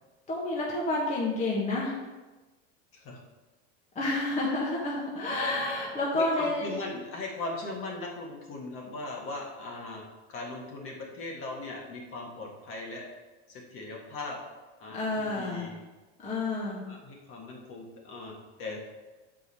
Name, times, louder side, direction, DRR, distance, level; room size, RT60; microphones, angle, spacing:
voice 1, 0.3-2.0 3.9-6.7 14.9-15.7 16.2-16.8, left 2 dB, 20° left, -4 dB, 1.3 m, -29 dB
voice 2, 6.1-10.0 10.3-13.1 13.5-14.4 14.8-15.8 16.7-18.3 18.6-18.8, left 2 dB, 40° left, -1 dB, 1.6 m, -39 dB
6.9 x 5.1 x 4.2 m, 1.2 s
supercardioid pair, 145°, 32 cm